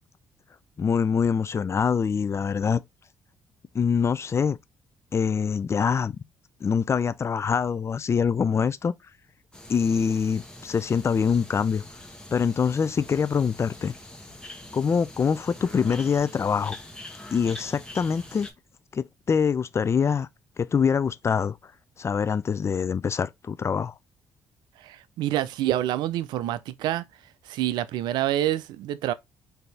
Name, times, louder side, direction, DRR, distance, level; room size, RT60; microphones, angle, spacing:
voice 1, 0.8-2.8 3.7-4.6 5.1-6.2 6.6-8.9 9.7-11.8 12.3-13.9 14.7-16.8 17.3-18.5 18.9-20.3 20.6-21.6 22.0-23.9, left 6 dB, 35° left, 0.4 m, -24 dB
sound 1, 9.5-18.5, left 1 dB, 10° left, 1.2 m, -44 dB
voice 2, 24.8-27.0 27.5-29.1, right 13 dB, 75° right, 0.4 m, -27 dB
4.0 x 2.7 x 3.3 m
hypercardioid pair, 55°, 8 cm